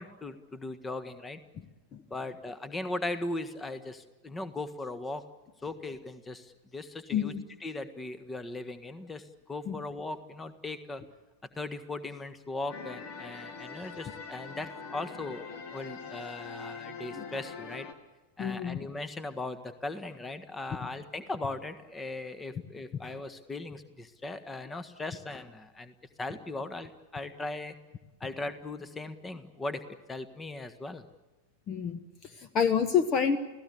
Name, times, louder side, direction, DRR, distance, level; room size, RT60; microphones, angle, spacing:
voice 1, 0.0-1.4 2.1-5.2 5.6-7.3 7.6-11.0 11.5-15.4 15.7-17.9 18.4-27.7 28.2-31.0, left 2 dB, 15° left, 12 dB, 1.5 m, -38 dB
voice 2, 7.1-7.4 9.7-9.8 17.2-17.3 18.4-18.9 31.7-33.4, left 7 dB, 30° left, 11 dB, 1.2 m, -28 dB
sound 1, 12.7-17.9, left 5 dB, 45° left, 2.4 m, -43 dB
30.0 x 17.0 x 8.3 m, 1.1 s
figure-of-eight pair, 90°, 0 cm